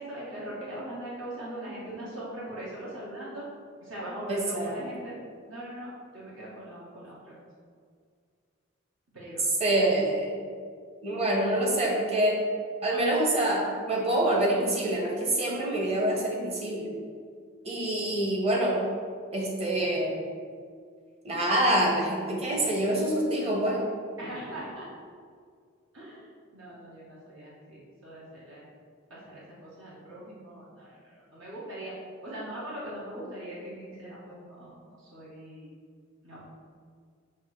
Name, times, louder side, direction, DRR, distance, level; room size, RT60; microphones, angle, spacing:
voice 1, 0.0-3.4 3.8-5.2 5.5-7.3 9.1-9.5 24.2-24.9 25.9-28.6 29.1-32.0 32.2-35.7 36.2-36.5, right 1 dB, 70° right, -7 dB, 1.9 m, -41 dB
voice 2, 4.3-4.8 9.6-10.3 11.0-12.4 12.8-16.9 17.6-18.8 19.3-20.2 21.2-23.8, right 1 dB, 30° right, -2 dB, 1.3 m, -26 dB
7.4 x 3.2 x 6.2 m, 2.1 s
head